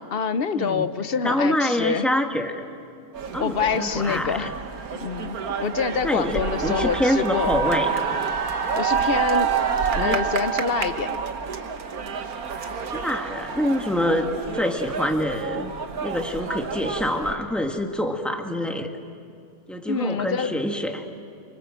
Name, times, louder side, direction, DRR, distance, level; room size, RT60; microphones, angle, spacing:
voice 1, 0.0-2.1 3.4-4.5 5.0-7.5 8.7-9.5 10.0-11.2 19.8-20.5, left 6 dB, 45° left, 12 dB, 0.9 m, -26 dB
voice 2, 0.5-0.9 1.2-2.5 3.3-4.5 6.0-7.9 9.9-10.2 12.9-15.7 16.0-18.9 19.7-21.0, left 1 dB, ahead, 3 dB, 1.7 m, -25 dB
sound 1, 3.1-17.4, right 6 dB, 70° right, 1.7 m, -28 dB
28.0 x 25.5 x 7.7 m, 2.5 s
omnidirectional pair, 1.6 m